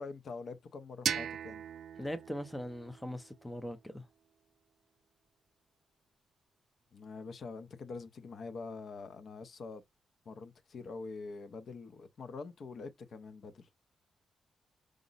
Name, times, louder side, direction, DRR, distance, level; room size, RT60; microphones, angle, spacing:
voice 1, 0.0-1.6 6.9-9.8 10.3-13.7, left 4 dB, 55° left, 0.6 m, -45 dB
sound 1, 1.1-3.9, right 8 dB, 80° right, 0.3 m, -39 dB
voice 2, 2.0-4.0, equal, 5° left, 0.5 m, -40 dB
4.9 x 2.0 x 3.9 m
wide cardioid pair, 150°, 0 cm